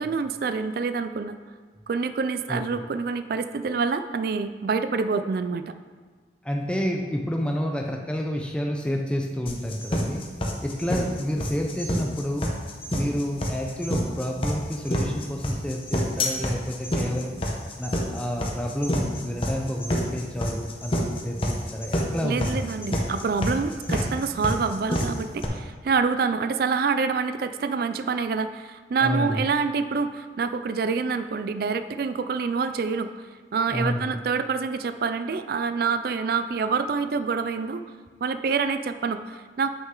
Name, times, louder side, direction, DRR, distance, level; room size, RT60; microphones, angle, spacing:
voice 1, 0.0-1.4 1.9-5.7 22.2-33.3 33.5-37.8 38.2-39.7, right 5 dB, 55° right, 11 dB, 0.3 m, -26 dB
voice 2, 6.4-10.2 10.6-12.5 12.9-17.4 17.8-22.7 29.0-29.4 33.7-34.2, equal, 5° left, 1 dB, 0.5 m, -29 dB
sound 1, 9.5-25.5, equal, 30° left, 0.9 m, -27 dB
8.3 x 6.3 x 3.7 m, 1.5 s
head